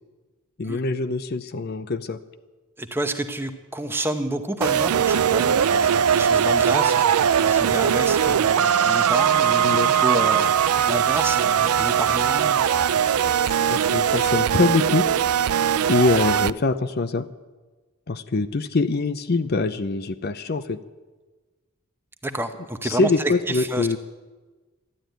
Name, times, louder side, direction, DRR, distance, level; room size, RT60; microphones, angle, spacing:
voice 1, 0.6-2.2 9.6-9.9 13.7-15.0 15.9-17.3 18.1-20.8 22.8-24.0, left 3 dB, 45° left, 12 dB, 0.5 m, -23 dB
voice 2, 2.8-7.1 7.4-12.7 22.2-23.9, right 1 dB, 10° right, 8 dB, 0.9 m, -29 dB
sound 1, 4.6-16.5, right 8 dB, 90° right, 0.4 m, -20 dB
sound 2, 5.0-14.3, left 4 dB, 85° left, 3.0 m, -41 dB
12.5 x 11.5 x 9.2 m, 1.3 s
head